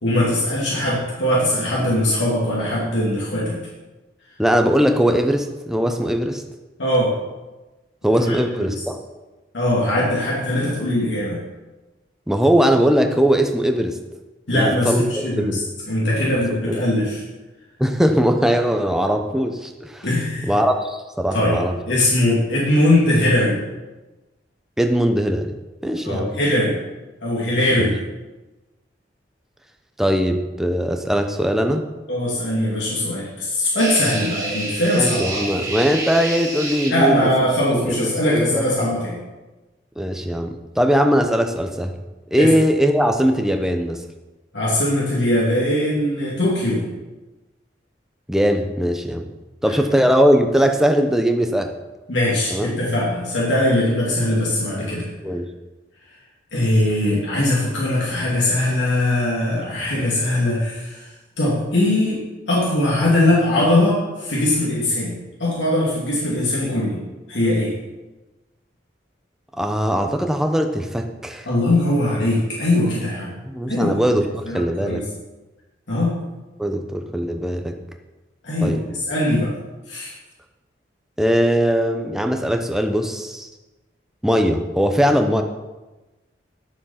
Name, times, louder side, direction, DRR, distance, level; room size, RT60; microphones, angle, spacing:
voice 1, 0.0-3.6 6.8-7.1 8.2-8.7 9.5-11.4 14.5-15.6 15.9-17.2 20.0-20.5 21.3-23.6 26.0-26.8 27.2-27.9 32.1-35.6 36.8-39.2 42.4-42.5 44.5-46.8 49.7-49.8 52.1-55.0 56.5-65.1 65.4-67.0 67.3-67.7 71.5-73.3 73.7-73.9 74.5-75.0 75.9-76.2 78.4-79.5 79.9-80.1, left 1 dB, 90° left, -6 dB, 2.7 m, -20 dB
voice 2, 4.4-6.4 8.0-8.9 12.3-14.0 14.5-15.0 15.4-15.6 16.7-16.8 17.8-20.1 20.5-21.7 24.8-25.5 25.8-26.3 27.7-27.9 30.0-31.9 34.7-37.3 37.7-38.9 40.0-41.9 42.3-44.0 48.3-49.2 49.6-51.7 52.5-52.7 55.2-55.5 69.5-71.5 73.4-75.0 76.6-77.7 78.6-78.8 81.2-83.5 84.2-85.4, equal, 5° right, 4 dB, 0.8 m, -20 dB
sound 1, 33.8-36.9, right 2 dB, 20° right, 2.2 m, -29 dB
11.0 x 7.1 x 5.8 m, 1.1 s
head